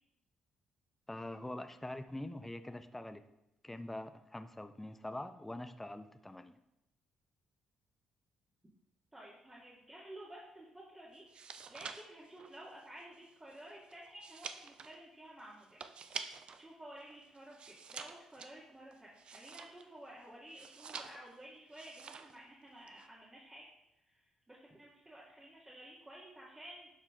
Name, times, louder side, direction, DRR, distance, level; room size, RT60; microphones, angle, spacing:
voice 1, 1.1-3.2 3.6-6.6, left 1 dB, 10° left, 10 dB, 0.7 m, -44 dB
voice 2, 9.1-11.2 11.7-15.8 16.6-23.7 24.1-26.9, right 1 dB, 20° right, -6 dB, 2.1 m, -53 dB
sound 1, 11.2-16.7 17.0-20.0 20.5-21.4 21.7-22.4 22.7-23.1, right 6 dB, 50° right, 0.6 m, -48 dB
11.5 x 4.5 x 3.8 m, 0.89 s
hypercardioid pair, 45°, 2 cm